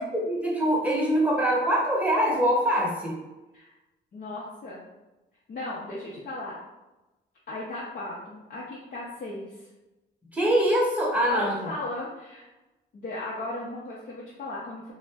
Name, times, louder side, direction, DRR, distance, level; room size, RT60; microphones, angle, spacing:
voice 1, 0.0-3.2 10.3-11.7, equal, 5° right, -4 dB, 0.9 m, -24 dB
voice 2, 4.1-4.8 5.5-6.6 7.5-9.7 11.3-12.4 12.9-14.9, left 2 dB, 45° left, -5 dB, 0.6 m, -36 dB
2.4 x 2.1 x 3.4 m, 1.0 s
cardioid pair, 90°, 20 cm